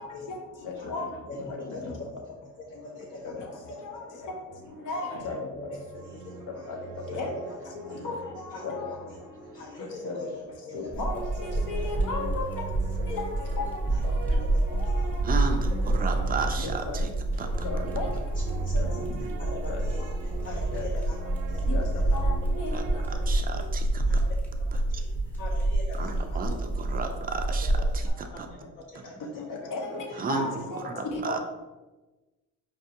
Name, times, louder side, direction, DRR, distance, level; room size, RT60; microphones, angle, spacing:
voice 1, 0.0-4.4 4.9-8.1 8.5-11.2 11.5-13.4 13.9-15.2 15.5-16.8 17.9-22.2 22.5-23.6 24.1-27.1 27.8-29.7 30.1-30.6 31.3-31.4, left 2 dB, 35° left, -1 dB, 0.5 m, -44 dB
voice 2, 0.6-1.1 3.9-4.4 4.9-5.4 6.7-6.8 7.1-7.3 8.0-8.9 9.8-10.2 10.7-11.1 11.7-12.8 13.1-13.2 13.6-13.7 16.6-17.0 17.6-18.1 19.7-19.8 20.7-20.8 21.7-21.8 22.1-22.7 29.4-29.5 29.7-30.1 30.3-31.4, left 3 dB, 65° left, 2 dB, 0.8 m, -34 dB
sound 1, 4.5-10.4 11.0-23.5, right 6 dB, 85° right, 0.5 m, -42 dB
sound 2, 10.9-28.1, right 1 dB, 5° left, 0.8 m, -28 dB
voice 3, 15.2-17.1 17.4-17.5 22.7-24.2 24.9-25.0 26.0-28.5 30.1-31.4, right 4 dB, 25° right, 5 dB, 0.3 m, -34 dB
5.1 x 2.3 x 2.7 m, 1.1 s
cardioid pair, 125°, 34 cm